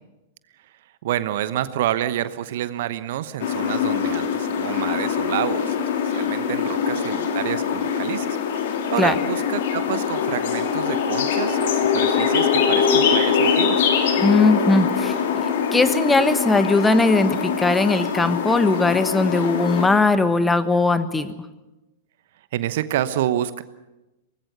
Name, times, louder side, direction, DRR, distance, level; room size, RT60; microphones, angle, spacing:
voice 1, 1.0-5.8 6.0-13.9 22.5-23.6, right 12 dB, 55° right, 14 dB, 1.0 m, -28 dB
sound 1, 3.4-19.9, left 6 dB, 55° left, 3.1 m, -23 dB
voice 2, 14.2-15.4 15.7-21.3, left 3 dB, 10° left, 12 dB, 1.3 m, -19 dB
24.0 x 19.5 x 6.8 m, 1.0 s
figure-of-eight pair, 100°, 0 cm